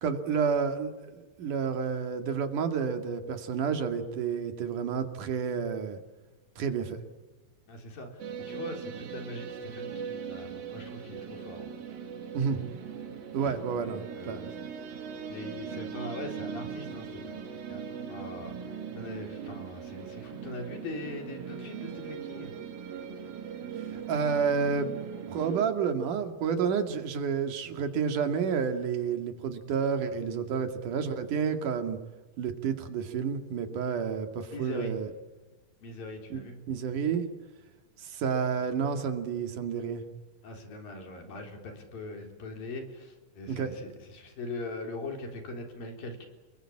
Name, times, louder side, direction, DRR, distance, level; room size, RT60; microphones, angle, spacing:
voice 1, 0.0-6.0 6.6-7.0 12.3-12.6 13.3-14.4 24.1-24.9 25.3-32.0 32.4-35.1 36.3-36.4 36.7-37.3 38.0-40.0 43.5-43.7, right 6 dB, 65° right, 7 dB, 3.6 m, -30 dB
voice 2, 7.7-11.7 13.5-13.6 14.1-14.6 15.3-17.8 18.1-18.5 19.0-22.5 34.5-35.0 35.8-36.6 40.4-46.3, left 2 dB, 75° left, 4 dB, 5.7 m, -41 dB
sound 1, 8.2-25.7, right 7 dB, 85° right, 4.1 m, -40 dB
29.5 x 21.5 x 8.7 m, 1.2 s
omnidirectional pair, 4.1 m